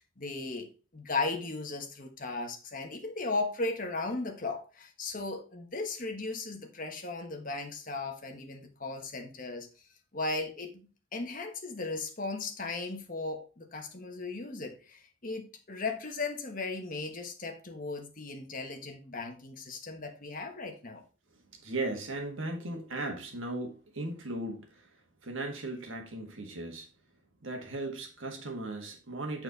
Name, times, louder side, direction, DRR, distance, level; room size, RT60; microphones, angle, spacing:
voice 1, 0.2-9.7 10.1-21.0, left 3 dB, 40° left, 1.4 m, -36 dB
voice 2, 21.5-24.8 25.2-26.9 27.4-29.4, right 2 dB, 65° right, 1.6 m, -37 dB
8.9 x 4.4 x 4.1 m
head